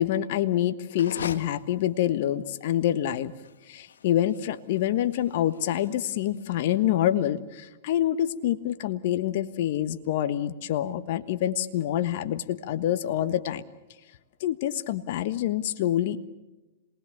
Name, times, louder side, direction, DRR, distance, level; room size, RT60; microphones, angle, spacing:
voice 1, 0.0-3.3 3.7-13.6 14.4-16.2, left 11 dB, 60° left, 11 dB, 1.4 m, -26 dB
sound 1, 0.8-7.0, left 6 dB, 80° left, 1.3 m, -43 dB
27.0 x 20.5 x 7.1 m, 1.1 s
hypercardioid pair, 110°, 0 cm